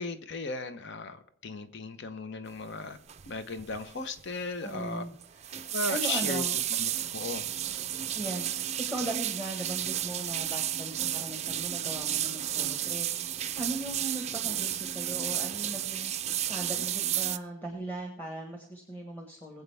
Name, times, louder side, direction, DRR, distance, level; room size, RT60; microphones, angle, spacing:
voice 1, 0.0-3.0 3.3-5.1 5.7-6.4 6.8-7.5, left 3 dB, 55° left, 10 dB, 0.9 m, -36 dB
sound 1, 3.1-3.3 3.6-3.9 4.2-4.3 5.2-17.4, right 11 dB, 30° right, 0.4 m, -32 dB
voice 2, 4.6-5.6 5.9-6.6 8.1-8.5 8.8-13.1 13.6-16.1 16.5-19.6, right 2 dB, 10° left, 1 dB, 1.4 m, -38 dB
21.5 x 7.9 x 3.5 m, 0.67 s
head